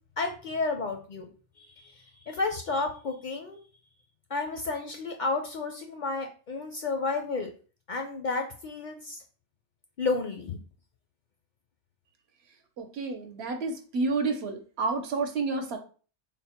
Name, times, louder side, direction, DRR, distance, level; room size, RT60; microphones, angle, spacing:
voice 1, 0.2-1.2 1.6-1.9 2.3-3.6 4.3-7.5 7.9-9.2 10.0-10.6, left 3 dB, 55° left, 4 dB, 0.5 m, -31 dB
voice 2, 12.8-15.8, right 3 dB, 70° right, 5 dB, 1.0 m, -30 dB
3.8 x 2.1 x 4.2 m, 0.38 s
omnidirectional pair, 1.2 m